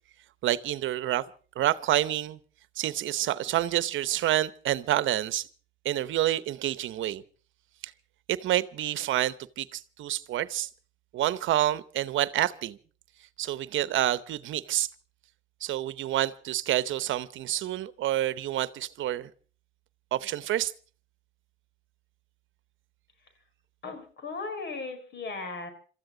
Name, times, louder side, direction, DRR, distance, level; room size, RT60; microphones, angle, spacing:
voice 1, 0.4-1.3 1.6-2.4 2.8-5.5 5.8-7.2 7.8-7.9 8.3-10.7 11.1-12.8 13.4-14.9 15.6-19.3 20.1-20.7, right 13 dB, 75° right, 0.8 m, -28 dB
voice 2, 23.8-25.7, left 3 dB, 60° left, 5.0 m, -37 dB
26.5 x 14.0 x 3.8 m
cardioid pair, 90°, 20 cm